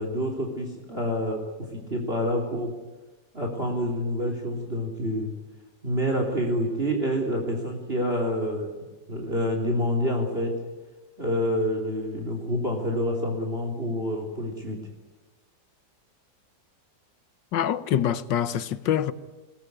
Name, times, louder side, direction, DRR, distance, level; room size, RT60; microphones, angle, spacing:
voice 1, 0.0-2.7 3.3-5.3 5.8-10.5 11.2-14.8, equal, 30° right, 3.6 m, -27 dB
voice 2, 17.5-19.1, left 10 dB, 85° left, 1.7 m, -25 dB
21.0 x 20.5 x 9.5 m
omnidirectional pair, 1.9 m